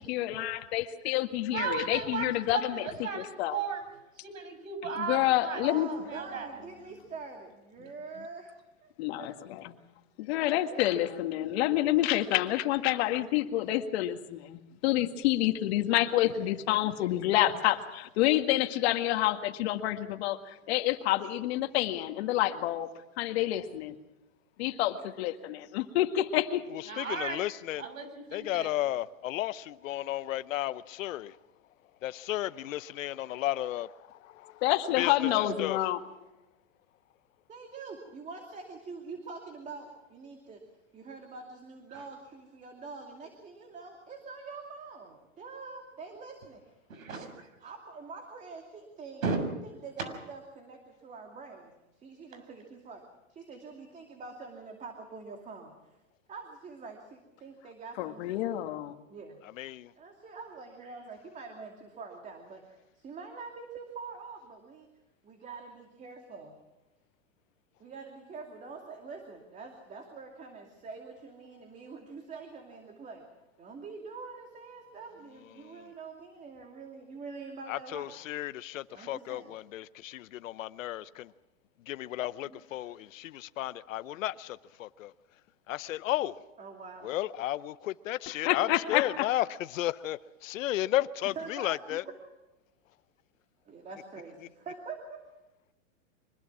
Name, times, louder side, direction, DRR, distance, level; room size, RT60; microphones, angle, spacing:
voice 1, 0.1-3.6 5.0-5.9 9.0-9.7 10.2-22.9 23.2-23.9 24.6-27.0 34.6-36.0 58.0-58.9 88.3-89.3, left 14 dB, 50° left, 2.0 m, -28 dB
voice 2, 1.5-3.8 4.2-5.6 6.0-6.6 26.9-27.5 27.8-28.7 41.9-42.0 46.9-47.2 49.2-49.4, right 5 dB, 85° right, 6.7 m, -35 dB
voice 3, 5.6-8.5 8.8-9.3 10.6-11.0 23.3-23.8 34.9-35.6 37.5-40.6 40.9-46.6 47.1-47.3 47.6-49.2 49.6-53.0 53.3-55.7 56.3-58.2 59.1-59.4 59.9-64.9 65.2-66.6 67.8-73.3 73.6-78.2 78.9-79.5 82.4-83.1 86.6-87.1 91.2-92.0 93.7-95.2, right 4 dB, 20° right, 2.5 m, -45 dB
voice 4, 27.0-27.8 28.3-31.3 32.0-33.9 34.4-34.5 35.0-35.1 35.6-35.8 59.6-59.9 77.7-81.3 81.9-85.1 85.7-86.3 87.0-89.4 89.7-92.0, left 14 dB, 75° left, 0.8 m, -33 dB
24.5 x 21.0 x 6.1 m
hypercardioid pair, 145°, 40 cm